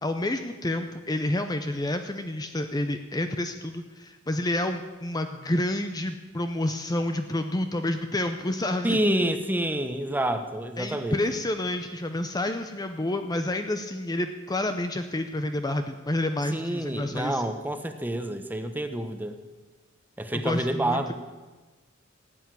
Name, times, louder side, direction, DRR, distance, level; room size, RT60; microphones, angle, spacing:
voice 1, 0.0-9.0 10.8-17.4 20.3-21.1, left 1 dB, 20° left, 7 dB, 0.7 m, -29 dB
voice 2, 8.8-11.4 16.5-19.4 20.2-21.1, right 1 dB, 10° right, 8 dB, 1.0 m, -28 dB
16.0 x 8.3 x 9.3 m, 1.3 s
head